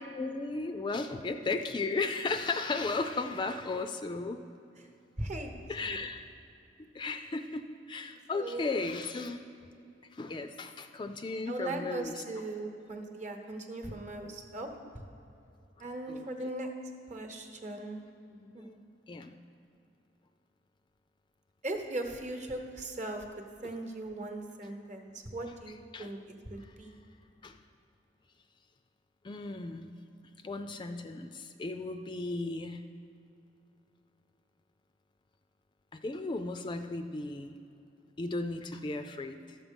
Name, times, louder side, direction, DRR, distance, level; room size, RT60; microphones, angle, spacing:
voice 1, 0.2-4.4 5.7-6.2 6.9-9.4 10.1-12.2 15.8-16.2 18.3-18.7 19.1-19.3 25.9-26.1 27.4-27.6 29.2-29.9 30.4-32.8 35.9-37.6 38.2-39.6, left 3 dB, 25° left, 7 dB, 0.3 m, -35 dB
voice 2, 5.2-6.0 8.3-8.8 11.5-14.8 15.8-16.7 17.1-18.0 18.5-18.8 21.6-26.2 26.4-27.0, right 2 dB, 40° right, 4 dB, 1.0 m, -39 dB
12.5 x 7.3 x 5.2 m, 2.6 s
head